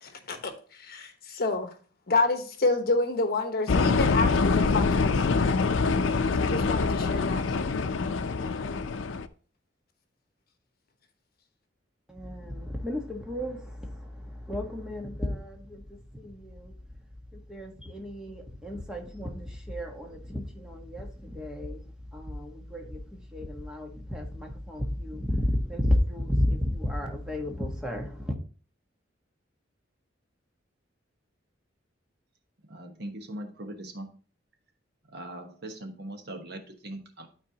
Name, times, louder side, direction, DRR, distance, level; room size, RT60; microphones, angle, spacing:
voice 1, 0.0-1.7 2.1-5.3 6.4-7.6, left 3 dB, 55° left, 1.1 m, -29 dB
sound 1, 3.7-9.3, left 4 dB, 85° left, 0.5 m, -25 dB
voice 2, 12.1-15.8 16.1-16.7 17.5-21.8 22.1-28.3, left 1 dB, 5° right, 1.3 m, -32 dB
voice 3, 32.7-34.1 35.1-37.3, right 1 dB, 60° right, 1.2 m, -40 dB
12.0 x 4.3 x 2.9 m
head